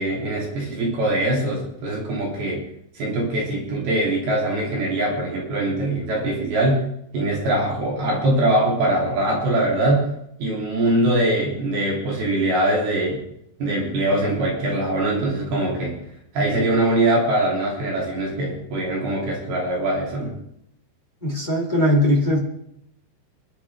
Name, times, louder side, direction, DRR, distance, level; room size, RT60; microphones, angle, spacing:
voice 1, 0.0-2.6 2.9-6.8 7.1-10.1 10.4-13.2 13.6-16.0 16.3-20.3, right 1 dB, 55° right, -3 dB, 4.9 m, -22 dB
voice 2, 21.2-22.4, left 1 dB, 20° left, -3 dB, 1.4 m, -19 dB
26.5 x 11.5 x 3.7 m, 0.75 s
omnidirectional pair, 5.4 m